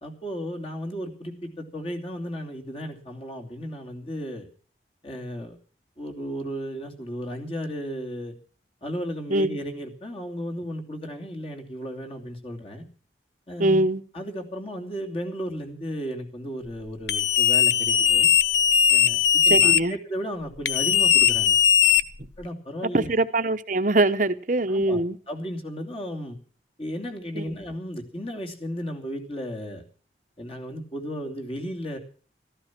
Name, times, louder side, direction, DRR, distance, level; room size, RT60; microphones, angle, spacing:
voice 1, 0.0-4.5 5.0-5.6 6.0-8.3 8.8-12.8 13.5-13.9 14.1-18.3 18.9-21.6 22.4-23.1 24.7-26.4 26.8-29.8 30.4-32.0, equal, 30° left, 2.9 m, -34 dB
voice 2, 13.6-14.0 19.5-20.0 22.9-25.2 27.3-27.5, right 2 dB, 45° right, 1.0 m, -23 dB
sound 1, 17.1-19.8 20.6-22.4, left 9 dB, 75° left, 0.8 m, -19 dB
14.5 x 14.0 x 6.0 m
head